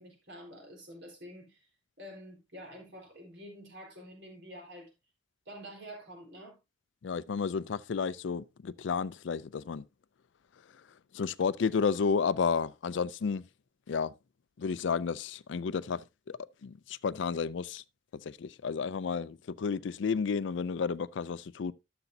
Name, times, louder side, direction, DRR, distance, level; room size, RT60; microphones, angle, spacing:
voice 1, 0.0-1.7 2.0-4.9 5.5-6.6, equal, 65° right, 4.2 m, -48 dB
voice 2, 7.0-9.9 11.1-13.4 13.9-14.1 14.6-17.8 18.1-21.7, left 5 dB, 70° left, 0.4 m, -32 dB
12.0 x 6.9 x 2.7 m
head